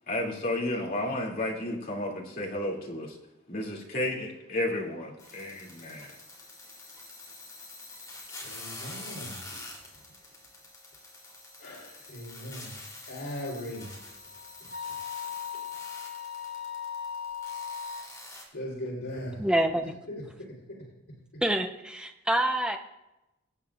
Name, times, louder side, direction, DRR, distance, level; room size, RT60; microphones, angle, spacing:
voice 1, 0.1-3.1 3.5-6.1, left 1 dB, 45° left, -2 dB, 2.6 m, -32 dB
sound 1, 5.2-18.4, left 2 dB, 15° left, 3.0 m, -46 dB
voice 2, 8.4-9.6 11.6-12.7 13.1-13.9 14.6-14.7 18.5-19.4 20.1-20.5, equal, 80° left, -5 dB, 3.5 m, -39 dB
Wind instrument woodwind instrument, 13.7-18.1, left 7 dB, 55° right, 1.1 m, -38 dB
voice 3, 19.4-19.9 21.4-22.8, right 1 dB, 5° right, 4 dB, 0.7 m, -26 dB
23.5 x 8.7 x 2.4 m, 0.94 s
head